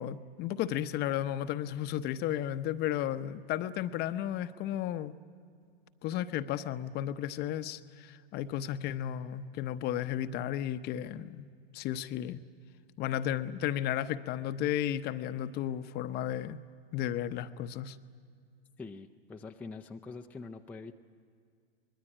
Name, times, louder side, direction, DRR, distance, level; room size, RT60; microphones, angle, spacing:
voice 1, 0.0-5.1 6.0-11.4 11.7-12.4 13.0-16.6 16.9-18.0, left 11 dB, 30° left, 12 dB, 0.8 m, -33 dB
voice 2, 18.8-20.9, left 4 dB, 5° left, 3 dB, 0.5 m, -44 dB
24.5 x 20.5 x 8.9 m, 2.3 s
hypercardioid pair, 115°, 31 cm